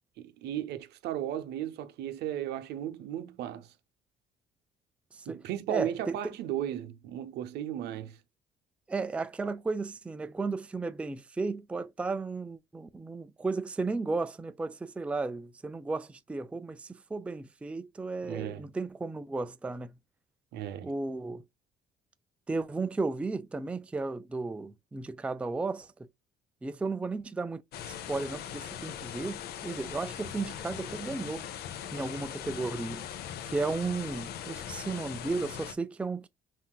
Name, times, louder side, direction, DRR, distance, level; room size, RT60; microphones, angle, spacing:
voice 1, 0.2-3.7 5.3-8.2 18.2-18.6 20.5-20.9, right 11 dB, 75° right, 0.7 m, -35 dB
voice 2, 5.7-6.3 8.9-19.9 20.8-21.4 22.5-25.9 26.6-27.6 27.9-31.4 31.9-33.0 33.4-36.3, right 3 dB, 5° right, 0.3 m, -34 dB
sound 1, 27.7-35.7, left 9 dB, 70° left, 0.6 m, -40 dB
5.7 x 2.6 x 2.3 m
cardioid pair, 110°, 17 cm